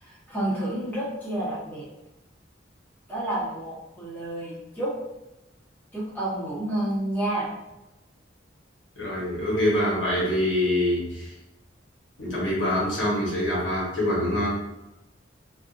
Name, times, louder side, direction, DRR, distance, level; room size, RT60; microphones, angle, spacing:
voice 1, 0.0-1.9 3.1-4.9 5.9-7.5, right 1 dB, 10° left, -9 dB, 1.1 m, -30 dB
voice 2, 9.0-11.3 12.2-14.6, left 1 dB, 85° left, -6 dB, 1.2 m, -25 dB
2.5 x 2.5 x 2.4 m, 0.95 s
head